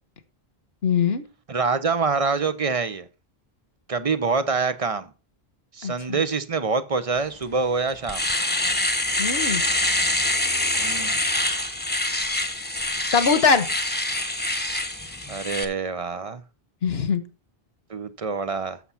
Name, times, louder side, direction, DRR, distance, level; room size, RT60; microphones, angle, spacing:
voice 1, 0.8-1.2 5.8-6.2 9.2-9.6 13.1-13.7 16.8-17.2, left 5 dB, 75° left, 1.3 m, -21 dB
voice 2, 1.5-3.1 3.9-5.1 5.7-8.2 10.8-11.2 15.3-16.4 17.9-18.8, right 4 dB, 40° right, 0.7 m, -25 dB
Domestic sounds home sounds, 7.4-7.5 7.9-15.6, left 1 dB, 10° left, 1.0 m, -25 dB
8.0 x 7.1 x 5.6 m
omnidirectional pair, 1.0 m